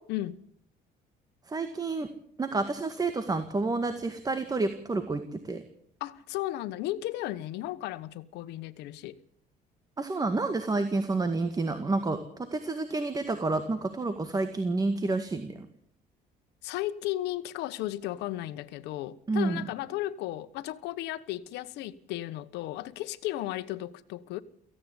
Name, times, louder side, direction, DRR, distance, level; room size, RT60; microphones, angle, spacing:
voice 1, 1.5-2.1 2.4-5.6 10.0-12.2 12.5-15.7 19.3-19.6, right 3 dB, 20° right, 1.9 m, -29 dB
voice 2, 6.0-9.2 16.6-24.4, left 15 dB, 90° left, 1.2 m, -35 dB
17.5 x 15.5 x 9.7 m
cardioid pair, 110°, 17 cm